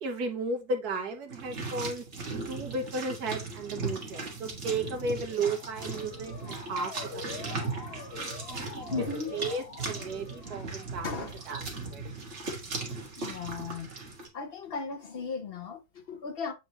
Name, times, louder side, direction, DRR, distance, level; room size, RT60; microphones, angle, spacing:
voice 1, 0.0-2.1 2.5-7.8 8.2-12.0, right 3 dB, 60° right, 1.4 m, -35 dB
sound 1, 1.3-14.3, right 3 dB, 40° right, 1.8 m, -38 dB
Motor vehicle (road) / Siren, 5.2-11.1, left 5 dB, 40° left, 1.0 m, -45 dB
voice 2, 8.9-9.3 11.0-11.4 13.0-13.9 14.3-16.5, left 5 dB, 75° left, 0.5 m, -36 dB
7.6 x 4.3 x 3.0 m
omnidirectional pair, 2.0 m